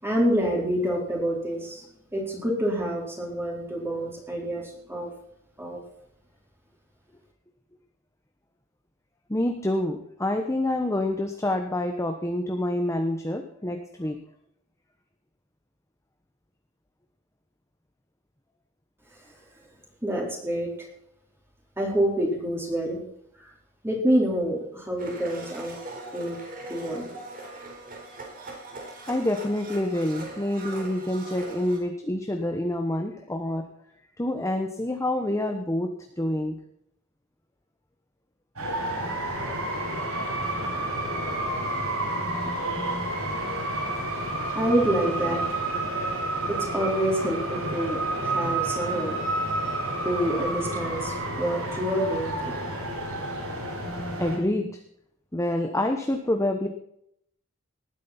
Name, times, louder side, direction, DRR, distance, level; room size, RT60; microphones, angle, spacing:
voice 1, 0.0-5.1 5.6-5.8 20.0-20.7 21.8-23.0 23.4-23.5 23.8-25.8 26.1-26.4 26.7-27.0 44.5-45.4 46.5-49.2 50.0-52.5, right 1 dB, 10° right, -2 dB, 4.1 m, -27 dB
voice 2, 9.3-14.2 26.0-26.1 27.4-27.6 29.1-33.6 34.2-35.9 36.2-36.6 42.3-43.2 53.9-54.8 55.3-56.7, left 1 dB, 15° left, 5 dB, 1.1 m, -27 dB
Domestic sounds home sounds, 25.0-31.8, right 2 dB, 40° right, 4.4 m, -41 dB
sound 1, 38.6-54.4, right 1 dB, 85° right, 6.5 m, -30 dB
19.0 x 9.6 x 4.3 m, 0.73 s
head